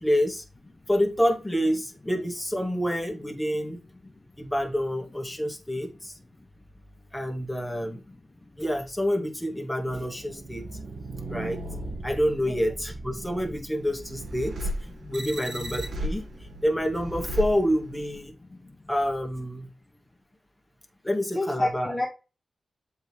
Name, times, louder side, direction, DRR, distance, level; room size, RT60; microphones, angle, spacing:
voice 1, 0.0-0.4 0.9-3.8 4.4-6.1 7.1-8.0 8.6-10.6 11.3-11.6 12.0-14.6 15.0-16.3 16.6-18.3 18.9-19.7 21.0-21.9, equal, 10° left, 2 dB, 1.9 m, -27 dB
voice 2, 7.8-8.2 10.5-10.7 11.0-11.1 12.4-12.6 14.8-15.1 18.4-18.9 21.3-22.1, left 2 dB, 25° left, 0 dB, 1.3 m, -33 dB
sound 1, 9.9-18.2, right 1 dB, 80° right, 1.8 m, -36 dB
7.5 x 4.6 x 3.5 m, 0.31 s
cardioid pair, 70°, 0 cm